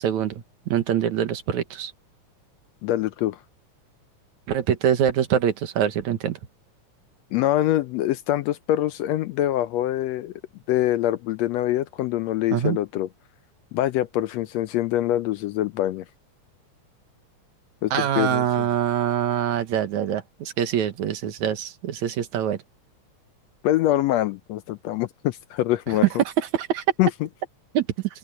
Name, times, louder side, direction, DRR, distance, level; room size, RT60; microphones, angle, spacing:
voice 1, 0.0-1.9 4.5-6.4 12.5-12.8 17.9-22.6 26.4-26.8 27.7-27.9, right 9 dB, 75° right, 2.8 m, -24 dB
voice 2, 2.8-3.4 7.3-10.3 10.7-13.1 13.7-16.0 17.8-18.7 23.6-26.0 27.0-27.3, left 14 dB, 75° left, 1.6 m, -24 dB
open air
omnidirectional pair, 3.4 m